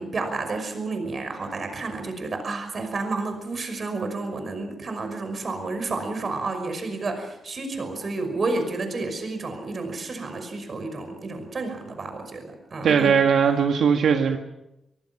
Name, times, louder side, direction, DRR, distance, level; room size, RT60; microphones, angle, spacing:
voice 1, 0.0-13.1, right 3 dB, 40° right, 7 dB, 5.7 m, -30 dB
voice 2, 12.8-14.4, right 6 dB, 75° right, 4 dB, 1.8 m, -19 dB
24.0 x 23.0 x 6.1 m, 0.88 s
wide cardioid pair, 160°, 0 cm